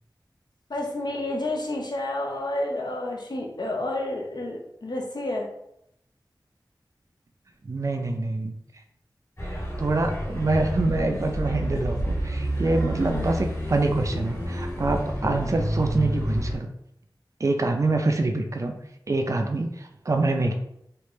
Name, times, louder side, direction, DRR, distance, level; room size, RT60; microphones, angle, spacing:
voice 1, 0.7-5.5 13.1-13.3, left 1 dB, 65° left, 0 dB, 0.7 m, -30 dB
voice 2, 7.6-8.5 9.8-16.7 17.4-18.7 19.1-20.5, right 2 dB, 40° right, 5 dB, 0.4 m, -25 dB
sound 1, 9.4-16.6, equal, 35° left, 1.4 m, -29 dB
3.3 x 2.5 x 3.1 m, 0.76 s
wide cardioid pair, 65°, 8 cm